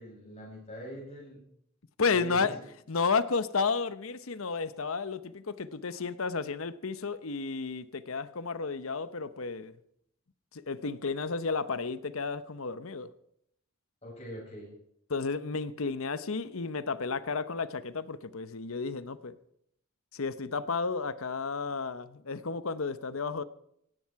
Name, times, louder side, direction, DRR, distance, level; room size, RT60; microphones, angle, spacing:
voice 1, 0.0-1.4 2.1-2.6 14.0-14.7, equal, 30° left, -5 dB, 8.0 m, -43 dB
voice 2, 2.0-2.6 2.9-9.7 10.5-13.1 15.1-19.4 20.1-23.4, left 4 dB, 75° left, 15 dB, 0.9 m, -32 dB
18.0 x 16.0 x 4.7 m, 0.72 s
head